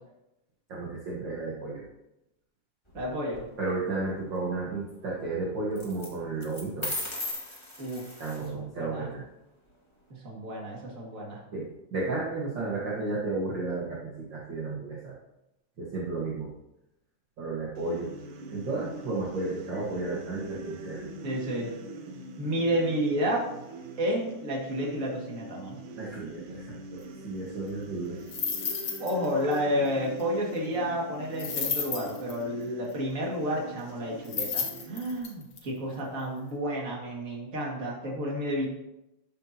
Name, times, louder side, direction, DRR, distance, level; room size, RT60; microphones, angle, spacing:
voice 1, 0.7-1.8 3.6-6.9 8.2-9.2 11.5-15.1 15.8-16.5 17.4-18.1 18.5-21.0 26.0-28.2, right 3 dB, 45° right, -5 dB, 1.8 m, -33 dB
sound 1, 2.9-3.4 5.7-6.1 6.4-8.5, left 2 dB, 15° left, 0.9 m, -36 dB
voice 2, 2.9-3.4 7.8-8.0 8.5-9.1 10.2-11.4 21.2-21.7 22.4-23.4 24.0-25.8 29.0-38.7, equal, 30° right, -2 dB, 2.0 m, -30 dB
sound 2, 17.8-35.2, right 2 dB, 75° right, 2.5 m, -43 dB
sound 3, 28.3-29.3 29.5-29.6 31.4-32.4 34.2-35.6, left 6 dB, 80° left, 1.0 m, -32 dB
12.5 x 8.3 x 2.9 m, 0.89 s
omnidirectional pair, 3.8 m